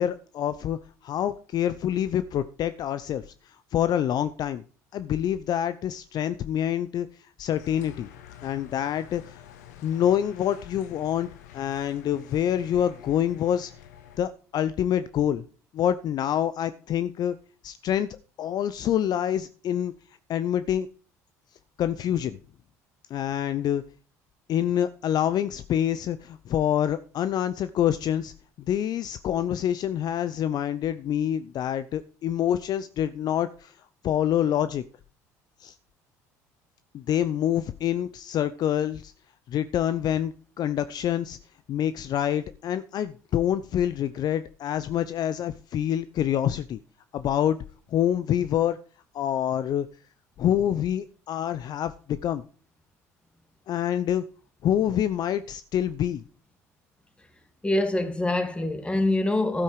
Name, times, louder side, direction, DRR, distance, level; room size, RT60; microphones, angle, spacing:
voice 1, 0.0-3.3 3.7-4.6 4.9-7.1 7.4-8.1 8.4-9.4 9.8-11.3 11.5-13.7 14.2-15.4 15.7-17.4 17.6-18.1 18.4-19.9 20.3-20.9 21.8-22.4 23.1-23.8 24.5-28.3 28.7-33.7 34.0-34.8 35.6-35.7 36.9-39.1 39.5-41.4 41.7-46.8 47.1-47.6 47.9-48.8 49.1-49.9 50.4-52.4 53.7-54.2 54.6-56.2, left 10 dB, 50° left, 0.7 m, -26 dB
sound 1, 7.5-14.2, left 10 dB, 80° left, 1.2 m, -48 dB
voice 2, 57.6-59.6, left 1 dB, 10° left, 2.1 m, -25 dB
12.5 x 8.6 x 4.7 m
hypercardioid pair, 65°, 9 cm